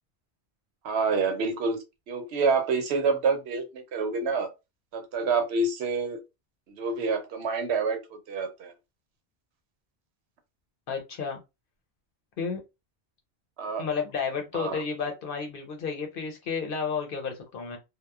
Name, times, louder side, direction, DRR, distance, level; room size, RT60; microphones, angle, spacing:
voice 1, 0.8-1.8 2.1-4.5 4.9-6.2 6.8-8.0 8.3-8.7 13.6-13.9 14.5-14.8, right 4 dB, 85° right, 0.9 m, -27 dB
voice 2, 10.9-11.4 12.4-12.6 13.8-17.8, left 5 dB, 60° left, 0.8 m, -32 dB
2.9 x 2.0 x 2.2 m
omnidirectional pair, 1.1 m